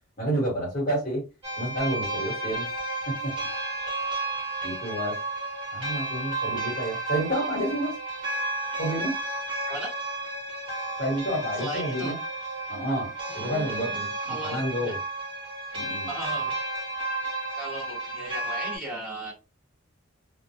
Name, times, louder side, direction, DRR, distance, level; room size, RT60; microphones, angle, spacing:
voice 1, 0.2-1.2 1.6-2.7 3.1-3.3 4.6-5.2 5.7-8.0 8.8-9.1 11.0-12.2 12.7-15.0 15.7-16.1, right 1 dB, 35° left, -3 dB, 1.2 m, -29 dB
sound 1, 1.4-18.8, right 2 dB, 25° right, 0.9 m, -32 dB
voice 2, 11.5-12.1 13.3-15.0 16.1-16.5 17.5-19.3, right 1 dB, ahead, -6 dB, 1.0 m, -37 dB
2.2 x 2.0 x 2.7 m, 0.28 s
head